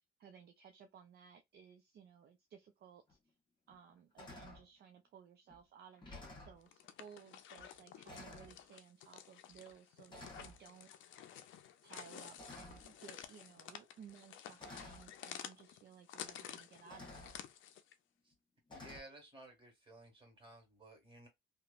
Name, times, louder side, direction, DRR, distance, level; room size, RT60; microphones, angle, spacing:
voice 1, 0.2-3.2 3.7-11.3 11.8-17.3, right 7 dB, 55° right, 0.4 m, -58 dB
sound 1, 3.1-3.2 3.7-3.9 4.2-4.7 5.5-5.6 5.9-6.6 7.6-7.7 8.1-8.6 9.5-9.7 10.1-10.6 12.4-13.0 14.1-14.2 14.6-15.1 16.2-16.3 16.9-17.4 18.7-19.0, left 2 dB, 25° left, 1.2 m, -52 dB
sound 2, 6.6-17.9, left 10 dB, 75° left, 0.5 m, -52 dB
voice 2, 18.7-21.3, right 1 dB, 25° right, 1.7 m, -56 dB
2.9 x 2.1 x 2.4 m
cardioid pair, 90°, 20 cm